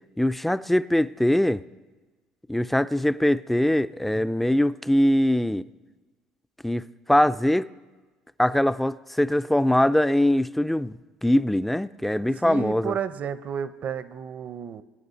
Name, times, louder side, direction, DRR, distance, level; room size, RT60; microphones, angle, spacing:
voice 1, 0.2-1.6 2.5-5.7 6.6-6.8 7.1-7.7 8.4-13.0, left 1 dB, 5° left, 0.4 m, -22 dB
voice 2, 12.1-14.8, right 8 dB, 45° right, 0.7 m, -32 dB
21.0 x 9.6 x 4.1 m
hypercardioid pair, 65°, 4 cm